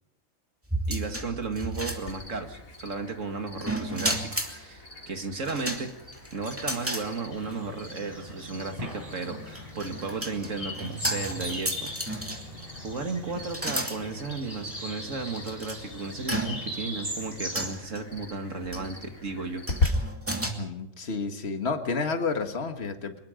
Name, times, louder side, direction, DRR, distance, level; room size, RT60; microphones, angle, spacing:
sound 1, 0.7-2.5 3.6-4.6 5.4-7.1 7.5-7.6 9.1-12.6 13.5-14.0 14.7-14.8 15.5-15.8 16.3-16.9 17.5-18.0 18.7-19.0 19.7-20.5, right 1 dB, 10° right, 2.5 m, -33 dB
voice 1, 0.9-4.2 4.5-5.9 6.3-12.3 12.8-19.6, right 4 dB, 65° right, 5 dB, 2.4 m, -34 dB
Cricket, 2.1-19.9, left 3 dB, 75° left, 3.2 m, -40 dB
sound 2, 7.3-17.7, left 1 dB, 25° right, 6.2 m, -39 dB
voice 2, 20.5-23.2, left 4 dB, 50° left, 6 dB, 1.9 m, -30 dB
24.0 x 21.5 x 5.2 m, 0.82 s
omnidirectional pair, 1.4 m